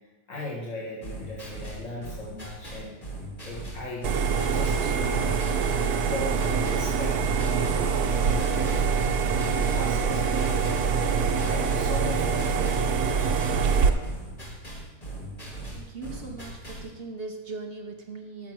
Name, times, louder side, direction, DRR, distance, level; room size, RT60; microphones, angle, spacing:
voice 1, 0.3-3.0 3.4-4.1 4.5-5.5 6.0-8.8 9.4-13.7, left 2 dB, 55° left, -5 dB, 2.2 m, -38 dB
sound 1, 1.0-16.9, right 1 dB, 25° left, 1.9 m, -40 dB
sound 2, 4.0-13.9, right 6 dB, 90° right, 1.3 m, -25 dB
voice 2, 15.7-18.5, right 3 dB, 50° right, 3 dB, 0.9 m, -39 dB
7.3 x 5.9 x 6.1 m, 1.1 s
omnidirectional pair, 1.6 m